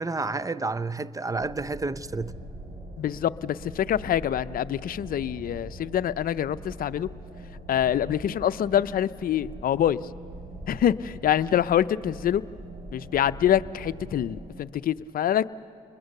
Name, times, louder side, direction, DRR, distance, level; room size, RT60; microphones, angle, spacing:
voice 1, 0.0-2.3, right 3 dB, 20° right, 0.7 m, -30 dB
sound 1, 1.3-14.6, right 1 dB, 75° right, 6.6 m, -42 dB
voice 2, 3.0-7.1 7.7-10.0 10.7-12.4 12.9-15.5, left 10 dB, 60° left, 0.6 m, -25 dB
29.5 x 21.5 x 6.7 m
supercardioid pair, 60°, 17 cm